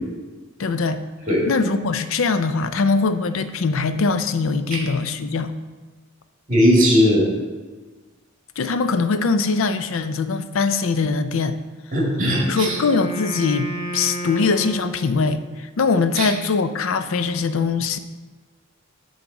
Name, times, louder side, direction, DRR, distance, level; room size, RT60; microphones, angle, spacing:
voice 1, 0.6-1.0 1.5-5.5 8.6-11.6 12.5-18.0, left 4 dB, 75° left, 10 dB, 0.5 m, -22 dB
voice 2, 6.5-7.3 11.9-12.8 16.2-16.3, equal, 40° right, -2 dB, 2.0 m, -18 dB
Wind instrument woodwind instrument, 12.2-15.5, equal, 30° left, 1.2 m, -32 dB
6.8 x 4.0 x 6.1 m, 1.3 s
head